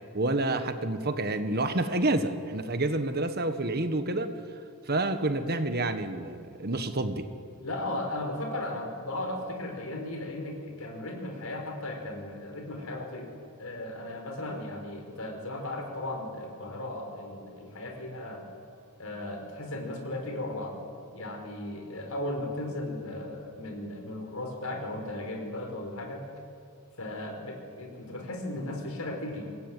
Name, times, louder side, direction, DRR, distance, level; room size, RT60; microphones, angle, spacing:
voice 1, 0.1-4.3 4.9-7.2, right 2 dB, 45° right, 9 dB, 1.5 m, -28 dB
voice 2, 7.6-13.3 13.6-18.5 19.0-20.8 21.1-26.2 27.0-29.5, left 1 dB, 75° left, 3 dB, 5.3 m, -36 dB
26.0 x 21.0 x 9.3 m, 2.4 s
head